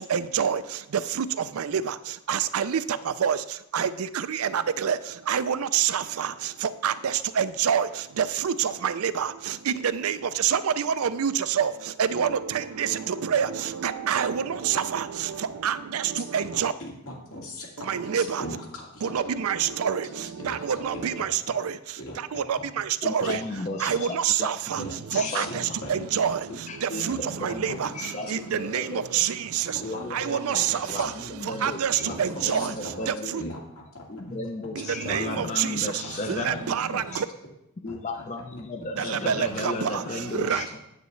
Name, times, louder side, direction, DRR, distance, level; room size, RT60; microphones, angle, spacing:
voice 1, 0.0-16.7 17.8-18.6 19.0-33.4 34.7-37.3 39.0-40.7, right 8 dB, 75° right, 0.4 m, -27 dB
voice 2, 16.5-17.9 18.1-19.1 20.4-20.6 20.9-21.3 22.0-22.2 23.2-23.4 24.7-25.5 25.8-26.0 27.1-27.2 27.5-27.9 30.0-30.1 32.0-32.2 32.5-32.7 33.4-33.6 33.9-34.4 35.0-36.5 37.9-38.2 38.5-38.6 39.0-39.2 40.3-40.8, left 1 dB, 80° left, 2.3 m, -40 dB
voice 3, 23.0-24.2 25.1-25.4 26.7-29.0 29.8-30.7 30.9-31.1 31.4-31.8 32.5-33.4 34.1-37.2 37.8-40.8, left 2 dB, 30° left, 0.5 m, -34 dB
9.3 x 8.0 x 3.2 m
head